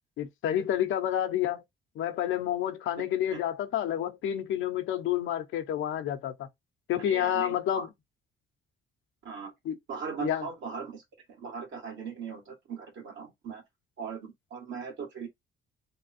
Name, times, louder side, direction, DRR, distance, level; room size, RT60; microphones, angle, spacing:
voice 1, 0.2-1.6 1.9-6.5 6.9-7.9 9.6-9.8 10.2-10.5, left 11 dB, 85° left, 0.8 m, -29 dB
voice 2, 3.0-3.4 7.1-7.9 9.2-9.5 9.9-11.0 11.3-13.6 14.0-15.3, right 6 dB, 70° right, 1.9 m, -39 dB
3.4 x 2.3 x 4.3 m
cardioid pair, 90°, 20 cm